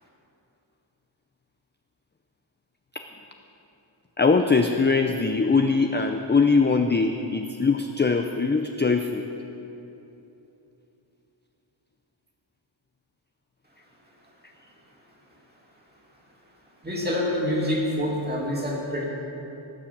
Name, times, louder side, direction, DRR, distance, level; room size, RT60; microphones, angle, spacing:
voice 1, 4.2-9.2, left 4 dB, 25° left, 5 dB, 0.5 m, -22 dB
voice 2, 16.8-19.0, left 1 dB, 20° right, -3 dB, 2.6 m, -26 dB
17.5 x 7.2 x 7.4 m, 3.0 s
wide cardioid pair, 135°, 49 cm